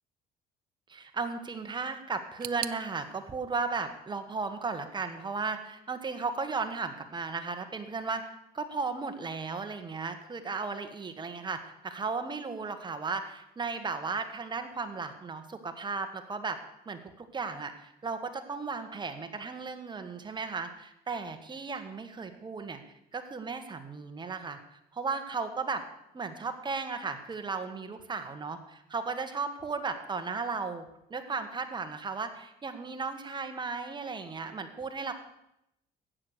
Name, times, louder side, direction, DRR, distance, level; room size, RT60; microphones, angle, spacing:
voice 1, 0.9-16.6 16.8-22.8 23.1-25.8 26.1-30.8 31.1-35.1, right 4 dB, 25° right, 7 dB, 1.6 m, -35 dB
sound 1, 2.4-5.3 5.5-6.3 6.6-6.7 7.6-7.7, right 13 dB, 60° right, 0.6 m, -45 dB
13.5 x 8.7 x 6.7 m, 0.82 s
cardioid pair, 110°, 17 cm